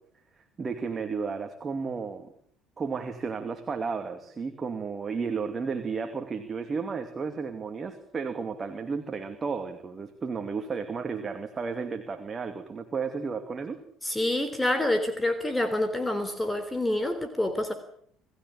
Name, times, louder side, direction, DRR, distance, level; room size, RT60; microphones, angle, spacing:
voice 1, 0.6-2.3 2.8-13.8, right 5 dB, 30° right, 6 dB, 2.6 m, -33 dB
voice 2, 14.0-17.7, left 1 dB, 10° left, 10 dB, 3.4 m, -27 dB
27.5 x 15.5 x 8.6 m, 0.62 s
hypercardioid pair, 60°, 0 cm